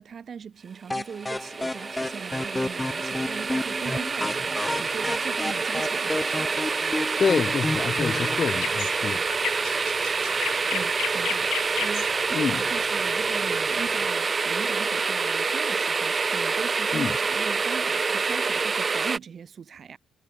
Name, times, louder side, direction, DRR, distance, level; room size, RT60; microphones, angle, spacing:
voice 1, 0.0-6.6 10.7-20.0, right 7 dB, 50° right, 6.5 m, -40 dB
sound 1, 0.9-8.5, left 1 dB, 10° left, 0.6 m, -31 dB
sound 2, 1.1-19.2, right 4 dB, 35° right, 2.1 m, -27 dB
voice 2, 7.2-9.3 12.3-12.6 16.9-17.1, left 6 dB, 45° left, 2.1 m, -26 dB
sound 3, 8.0-14.1, left 13 dB, 85° left, 4.5 m, -34 dB
cardioid pair, 90°, 0 cm